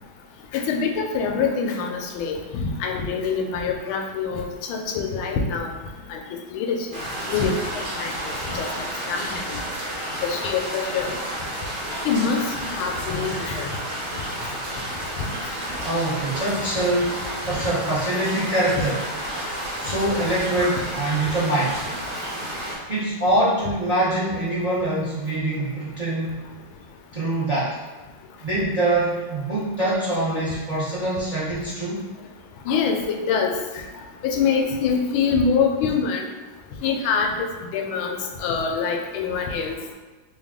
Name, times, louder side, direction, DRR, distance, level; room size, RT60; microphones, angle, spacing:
voice 1, 0.5-5.7 6.1-6.2 6.5-6.9 7.3-7.6 8.0-8.1 8.5-8.7 9.1-9.4 10.3-11.1 12.0-13.7 15.2-15.3 32.7-33.5 34.2-36.2 36.8-38.2 38.4-39.7, left 5 dB, 90° left, 2 dB, 1.4 m, -24 dB
sound 1, 6.9-22.8, right 1 dB, 55° right, 1.6 m, -31 dB
voice 2, 15.8-17.2 17.5-19.0 19.8-21.8 22.9-26.3 27.1-27.8 28.4-32.1, right 1 dB, 75° right, -10 dB, 0.3 m, -24 dB
3.4 x 2.4 x 3.5 m, 1.3 s
omnidirectional pair, 2.2 m